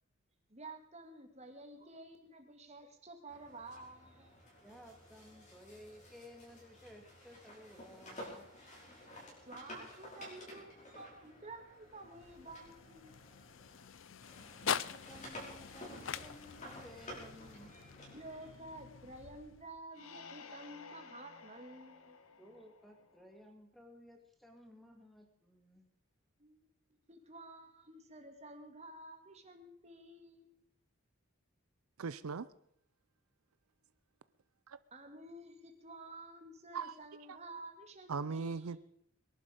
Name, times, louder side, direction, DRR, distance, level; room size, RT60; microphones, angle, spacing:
voice 1, 0.5-4.4 9.4-13.3 18.1-22.2 26.4-26.6 27.1-30.6 34.9-38.8, right 2 dB, 30° right, 2.1 m, -51 dB
sound 1, 3.3-13.9 14.2-18.5, left 1 dB, 35° left, 5.5 m, -53 dB
voice 2, 4.6-8.5 14.1-17.7 22.4-25.9, equal, ahead, 2.1 m, -56 dB
sound 2, 11.7-19.9, left 8 dB, 60° left, 0.5 m, -44 dB
sound 3, 19.9-23.5, left 5 dB, 80° left, 1.2 m, -54 dB
voice 3, 32.0-32.5 34.7-34.8 36.7-36.9 38.1-38.8, right 5 dB, 80° right, 0.5 m, -38 dB
22.0 x 11.5 x 5.1 m
head